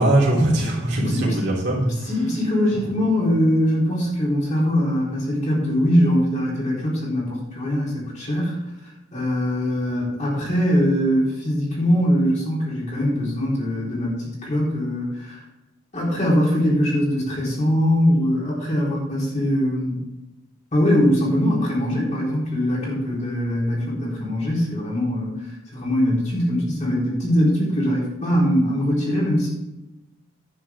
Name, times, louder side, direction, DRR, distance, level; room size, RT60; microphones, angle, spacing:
voice 1, 0.0-2.1, right 1 dB, 55° right, -4 dB, 3.2 m, -20 dB
voice 2, 1.0-1.4 2.1-8.6 9.1-15.4 15.9-20.0 20.7-25.4 25.7-29.5, equal, 35° left, -5 dB, 4.0 m, -22 dB
10.5 x 8.7 x 3.7 m, 0.99 s
head